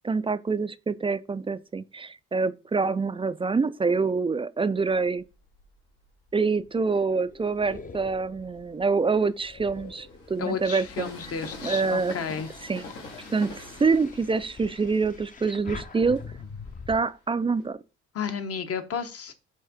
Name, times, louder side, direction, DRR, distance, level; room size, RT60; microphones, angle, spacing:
voice 1, 0.0-5.2 6.3-11.1 11.6-12.2 12.6-12.8 13.3-16.2 16.9-17.8, right 4 dB, 20° right, 0.3 m, -26 dB
Train, 4.8-6.5 7.1-17.7, left 3 dB, 85° left, 2.2 m, -46 dB
sound 1, 6.6-10.8 11.3-17.0, left 4 dB, 25° left, 0.6 m, -45 dB
voice 2, 10.4-12.5 18.1-19.3, left 7 dB, 50° left, 1.0 m, -32 dB
5.6 x 3.5 x 5.0 m
cardioid pair, 90°, 30 cm